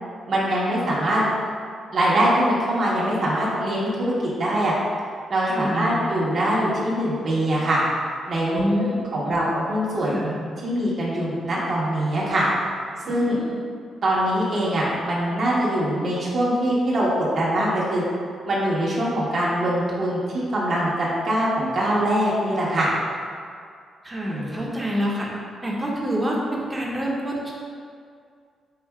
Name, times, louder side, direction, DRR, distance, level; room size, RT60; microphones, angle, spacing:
voice 1, 0.3-1.2 1.9-4.7 5.3-7.8 8.3-8.9 9.1-10.2 10.6-12.5 13.1-13.4 14.0-18.0 18.4-22.9 24.3-24.7, right 1 dB, 60° right, -7 dB, 1.0 m, -23 dB
voice 2, 5.4-5.9 8.5-8.9 9.2-9.5 10.0-10.3 13.0-13.6 24.0-25.3 25.6-27.5, equal, 15° right, -4 dB, 0.8 m, -27 dB
5.7 x 2.6 x 2.3 m, 2.2 s
cardioid pair, 70°, 0 cm